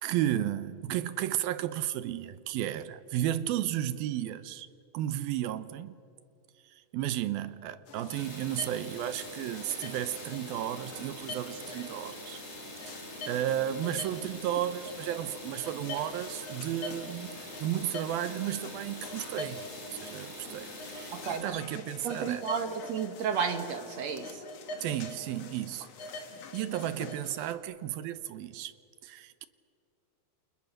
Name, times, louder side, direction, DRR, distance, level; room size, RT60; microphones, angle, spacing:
voice 1, 0.0-4.7 4.9-5.9 6.6-12.4 12.9-13.0 13.3-19.6 19.9-22.4 24.8-26.2 26.5-28.7 29.0-29.5, right 12 dB, 80° right, 2.6 m, -33 dB
sound 1, 7.9-27.5, left 3 dB, 50° left, 2.4 m, -45 dB
sound 2, 8.1-21.4, equal, 15° left, 6.3 m, -45 dB
voice 2, 21.1-21.6 22.0-24.4, right 7 dB, 60° right, 1.9 m, -32 dB
29.0 x 28.0 x 6.5 m
omnidirectional pair, 4.3 m